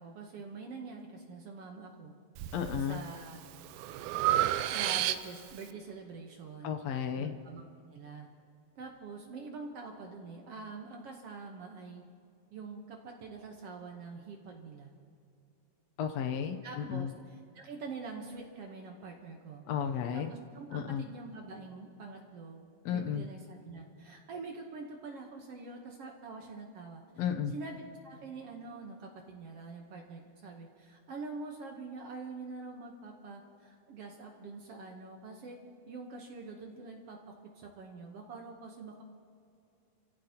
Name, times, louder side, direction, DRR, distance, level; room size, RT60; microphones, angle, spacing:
voice 1, 0.0-2.1 2.9-3.4 4.7-6.8 7.2-8.3 8.7-12.0 12.5-14.9 16.6-19.6 20.1-27.0 27.5-35.6 35.9-37.2 37.5-39.0, right 4 dB, 65° right, 1 dB, 1.5 m, -45 dB
Breathing, 2.4-2.9 3.3-5.6, right 13 dB, 90° right, 1.7 m, -31 dB
voice 2, 2.5-3.0 6.6-7.3 16.0-17.1 19.7-20.3 20.7-21.0 22.8-23.2 27.2-27.5, left 8 dB, 85° left, 5 dB, 1.4 m, -33 dB
27.5 x 15.5 x 2.9 m, 2.4 s
omnidirectional pair, 4.1 m